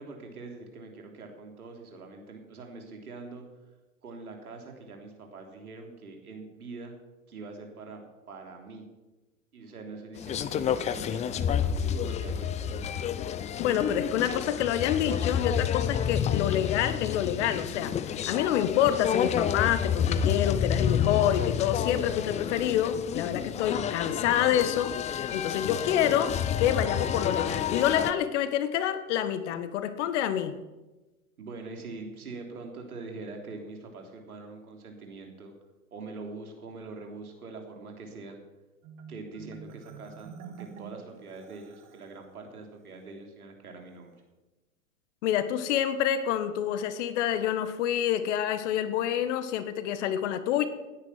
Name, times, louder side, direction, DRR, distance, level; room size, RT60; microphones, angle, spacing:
voice 1, 0.0-3.4 4.0-6.9 7.3-8.0 8.3-8.8 9.5-12.6 31.4-35.5 35.9-38.4 39.1-44.2, right 3 dB, 80° right, 3 dB, 3.4 m, -44 dB
sound 1, 10.2-28.1, left 8 dB, 15° left, 0.5 m, -29 dB
voice 2, 13.6-30.5 45.2-50.7, left 10 dB, 55° left, 12 dB, 1.5 m, -27 dB
Marimba xylophone, 38.8-42.2, right 6 dB, 40° right, 1.8 m, -47 dB
17.5 x 9.7 x 5.9 m, 1.1 s
hypercardioid pair, 100°, 43 cm